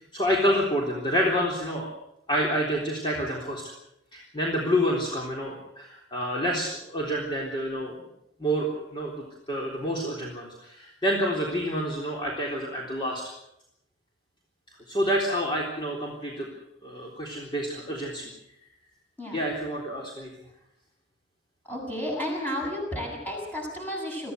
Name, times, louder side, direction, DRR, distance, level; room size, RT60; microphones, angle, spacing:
voice 1, 0.1-1.9 2.3-3.6 4.1-8.0 8.4-13.3 14.9-16.5 16.8-18.3 19.3-20.3, equal, 25° left, -2 dB, 3.7 m, -28 dB
voice 2, 21.7-24.3, left 1 dB, 10° left, -1 dB, 7.9 m, -32 dB
24.0 x 15.0 x 8.0 m, 0.82 s
head